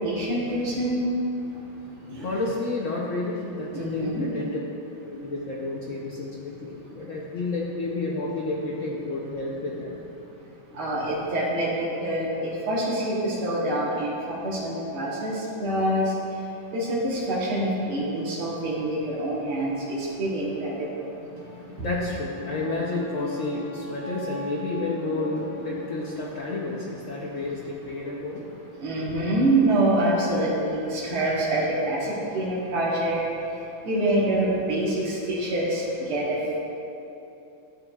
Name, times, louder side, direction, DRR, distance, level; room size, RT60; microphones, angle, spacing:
voice 1, 0.0-1.1 2.1-2.3 3.7-4.3 10.7-16.0 16.7-21.1 28.8-33.2 33.8-36.4, right 1 dB, 80° right, -6 dB, 2.2 m, -26 dB
voice 2, 1.5-4.6 5.1-9.9 10.7-10.8 21.3-28.5, left 2 dB, 75° left, -4 dB, 0.7 m, -31 dB
11.5 x 7.6 x 2.4 m, 2.9 s
omnidirectional pair, 2.3 m